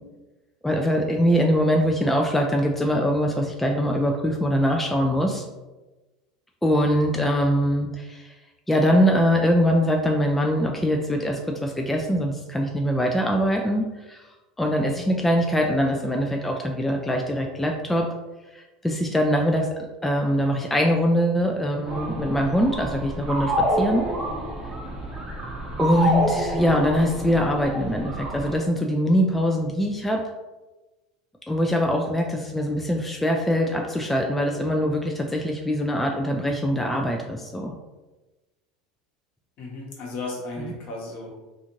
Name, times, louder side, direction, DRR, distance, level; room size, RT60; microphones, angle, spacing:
voice 1, 0.6-5.4 6.6-8.3 8.7-14.2 14.6-18.1 18.5-19.7 20.0-24.0 25.8-30.2 31.5-37.7 40.6-40.7, equal, 5° left, 1 dB, 0.3 m, -23 dB
sound 1, 21.9-28.6, equal, 20° right, 0.8 m, -28 dB
voice 2, 39.6-41.3, left 2 dB, 55° left, -2 dB, 1.0 m, -34 dB
2.5 x 2.4 x 2.9 m, 1.1 s
hypercardioid pair, 85°, 3 cm